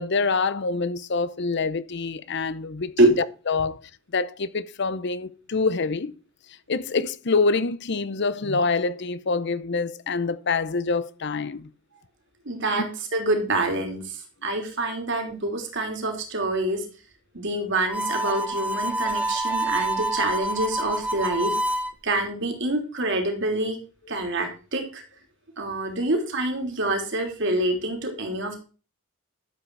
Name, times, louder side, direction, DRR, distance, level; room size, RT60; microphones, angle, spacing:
voice 1, 0.0-6.1 6.5-11.7, left 4 dB, 55° left, 0.7 m, -26 dB
voice 2, 12.4-16.8 17.3-21.6 22.0-23.8 24.1-25.0 25.6-28.6, right 2 dB, 60° right, 3.2 m, -26 dB
Harmonica, 17.9-21.9, right 1 dB, 5° right, 1.1 m, -27 dB
12.5 x 7.9 x 4.7 m
head